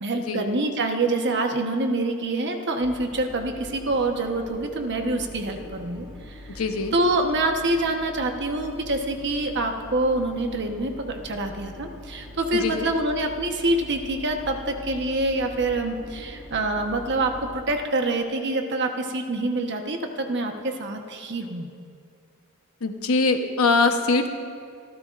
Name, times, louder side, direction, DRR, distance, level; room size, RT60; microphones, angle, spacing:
voice 1, 0.0-6.4 6.9-21.7, right 2 dB, 55° right, 4 dB, 1.1 m, -26 dB
sound 1, 2.8-17.6, left 1 dB, 5° right, 2.9 m, -42 dB
voice 2, 6.6-6.9 12.5-12.9 22.8-24.3, left 3 dB, 75° left, 6 dB, 1.0 m, -22 dB
25.5 x 14.0 x 2.5 m, 2.4 s
head